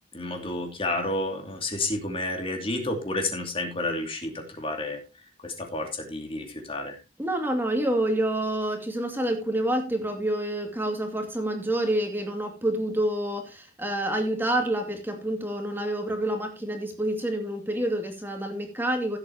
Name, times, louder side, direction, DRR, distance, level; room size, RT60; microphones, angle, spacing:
voice 1, 0.1-5.0 5.4-7.0, left 2 dB, 30° left, 4 dB, 2.7 m, -30 dB
voice 2, 7.2-19.2, right 1 dB, 10° right, 3 dB, 2.4 m, -28 dB
16.0 x 8.2 x 2.9 m, 0.26 s
head